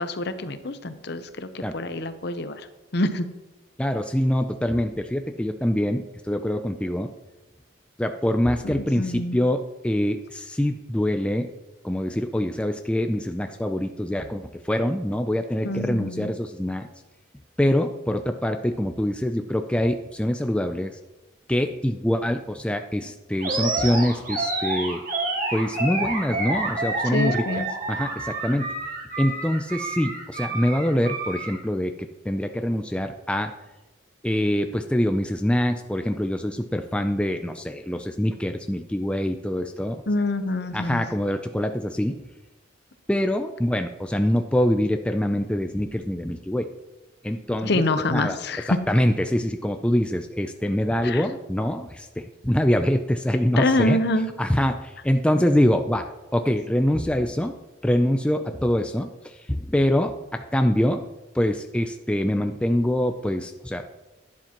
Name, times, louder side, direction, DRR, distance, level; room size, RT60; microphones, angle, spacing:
voice 1, 0.0-2.6 2.9-3.3 8.6-9.4 15.6-16.3 27.0-27.7 40.1-41.0 47.6-48.8 51.0-51.2 53.6-54.3, left 2 dB, 55° left, 10 dB, 0.7 m, -26 dB
voice 2, 3.8-7.1 8.0-11.5 11.8-16.9 17.6-20.9 21.5-25.0 25.5-28.7 29.2-33.5 34.2-40.0 40.7-42.3 43.1-46.7 47.2-47.8 48.1-48.4 48.9-54.0 54.4-56.1 56.3-57.6 57.8-61.0 61.3-63.8, left 1 dB, 5° left, 6 dB, 0.3 m, -24 dB
Animal, 23.4-31.6, right 2 dB, 45° right, 2.0 m, -29 dB
11.5 x 10.5 x 2.9 m, 1.1 s
head